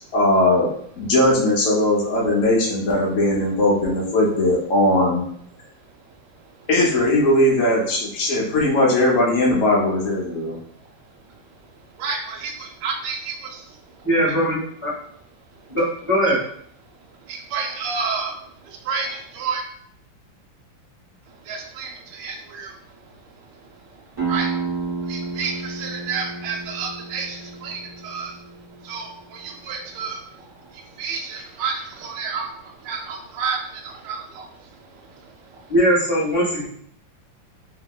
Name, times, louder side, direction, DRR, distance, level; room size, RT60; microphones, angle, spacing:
voice 1, 0.1-0.7 1.0-5.2 6.7-10.6, left 1 dB, 65° left, -4 dB, 0.8 m, -19 dB
voice 2, 12.0-13.6 17.3-18.3 18.9-19.6 21.5-22.7 24.3-24.5 25.1-28.3 28.8-30.2 31.0-32.5 32.8-34.5, right 5 dB, 75° right, 1 dB, 1.2 m, -30 dB
voice 3, 14.0-14.9 15.7-16.4 35.7-36.7, equal, 25° left, -8 dB, 0.8 m, -20 dB
sound 1, 24.2-29.6, right 4 dB, 25° right, 0.4 m, -31 dB
2.8 x 2.7 x 2.2 m, 0.64 s
omnidirectional pair, 2.1 m